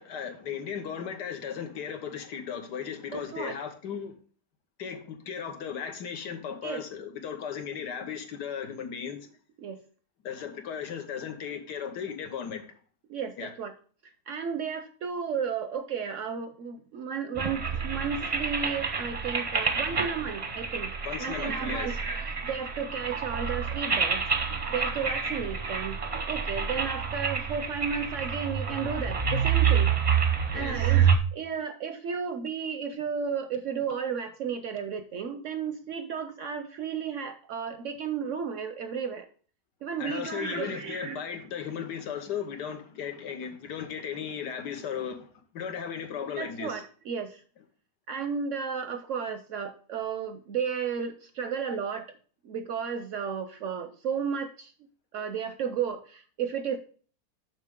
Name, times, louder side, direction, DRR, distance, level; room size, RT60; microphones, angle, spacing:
voice 1, 0.0-4.1 4.8-9.2 10.2-12.6 13.4-13.5 21.0-22.0 30.5-30.9 40.0-45.3 45.5-46.8, left 7 dB, 85° left, 1.7 m, -36 dB
voice 2, 3.1-3.6 6.6-6.8 9.6-9.8 13.1-13.7 14.3-20.9 21.2-24.2 24.7-26.0 26.3-29.9 30.5-39.3 39.8-41.2 46.4-47.4 48.1-52.0 52.4-54.7 55.1-56.8, right 6 dB, 65° right, 0.7 m, -33 dB
sound 1, 17.4-31.2, right 6 dB, 35° right, 0.5 m, -28 dB
7.4 x 6.0 x 3.5 m
omnidirectional pair, 1.7 m